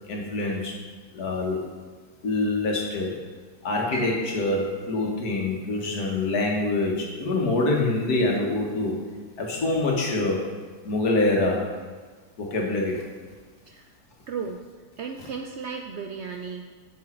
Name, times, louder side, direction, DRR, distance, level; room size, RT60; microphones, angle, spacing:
voice 1, 0.1-0.7 1.1-1.6 2.2-3.1 3.6-8.9 9.4-10.4 10.8-11.6 12.4-13.0, left 2 dB, 85° left, -1 dB, 1.8 m, -25 dB
Piano, 3.9-9.8 10.2-11.3 11.7-11.8 12.5-12.9, equal, 85° right, 2.6 m, -45 dB
voice 2, 14.3-14.7 15.0-16.7, right 5 dB, 70° right, 3 dB, 0.6 m, -35 dB
7.0 x 6.2 x 4.3 m, 1.5 s
omnidirectional pair, 1.6 m